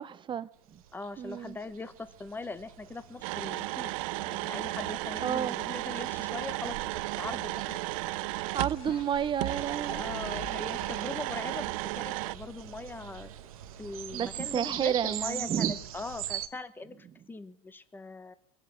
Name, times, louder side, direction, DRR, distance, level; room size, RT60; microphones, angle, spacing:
voice 1, 0.0-0.8 1.2-1.6 5.2-5.6 8.5-10.0 14.1-15.7, right 9 dB, 25° right, 0.7 m, -31 dB
sound 1, 0.7-16.5, right 11 dB, 85° right, 1.1 m, -42 dB
voice 2, 0.9-6.8 7.2-7.8 9.9-13.3 13.8-18.3, left 3 dB, 10° left, 1.0 m, -41 dB
sound 2, 3.2-8.8 9.4-12.3, right 20 dB, 70° right, 0.5 m, -34 dB
sound 3, 8.8-11.5 11.9-12.0, left 3 dB, 65° left, 2.5 m, -46 dB
22.5 x 8.3 x 7.1 m
supercardioid pair, 110°, 18 cm